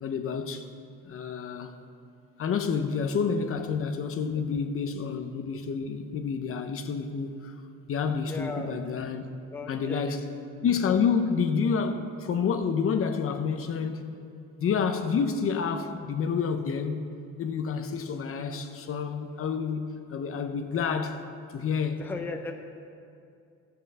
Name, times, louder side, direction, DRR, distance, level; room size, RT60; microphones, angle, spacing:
voice 1, 0.0-0.6 1.0-1.8 2.4-7.5 7.9-9.2 9.7-10.2 10.6-14.1 14.6-17.1 17.4-21.2 21.5-22.0, left 6 dB, 45° left, 0.7 m, -29 dB
voice 2, 8.3-8.7 9.5-10.2 22.0-22.5, left 3 dB, 5° left, 0.6 m, -36 dB
15.0 x 5.7 x 6.7 m
cardioid pair, 170°, 31 cm